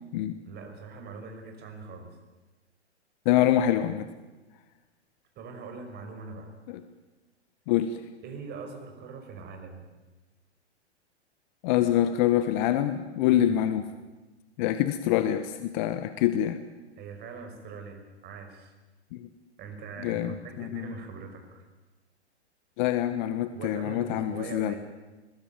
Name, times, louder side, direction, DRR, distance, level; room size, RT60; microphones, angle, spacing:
voice 1, 0.4-2.2 5.4-6.5 8.2-9.9 13.3-13.6 17.0-18.7 19.6-21.6 23.5-24.8, right 4 dB, 30° right, 4 dB, 5.6 m, -42 dB
voice 2, 3.2-4.1 6.7-6.8 7.7-8.0 11.6-13.8 14.6-16.6 19.1-19.3 20.0-20.9 22.8-24.7, left 12 dB, 40° left, 11 dB, 1.4 m, -25 dB
23.0 x 21.0 x 9.2 m, 1.2 s
figure-of-eight pair, 115°, 34 cm